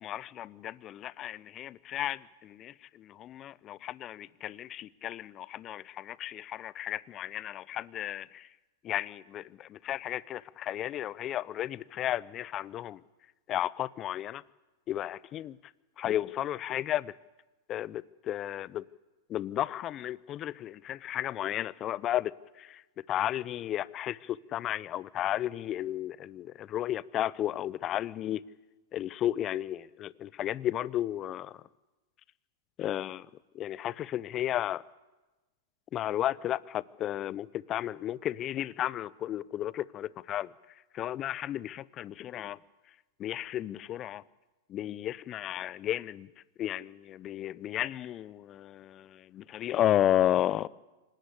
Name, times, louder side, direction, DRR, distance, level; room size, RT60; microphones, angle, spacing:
voice 1, 0.0-8.5 8.8-13.0 13.5-14.4 14.9-15.5 16.0-17.1 17.7-18.8 19.3-22.8 23.1-28.4 28.9-31.6 32.8-33.3 33.5-34.8 35.9-40.5 40.9-42.6 43.2-44.2 44.7-46.3 46.6-50.7, left 12 dB, 35° left, 0.8 m, -33 dB
26.0 x 18.5 x 8.5 m
hypercardioid pair, 105°, 0 cm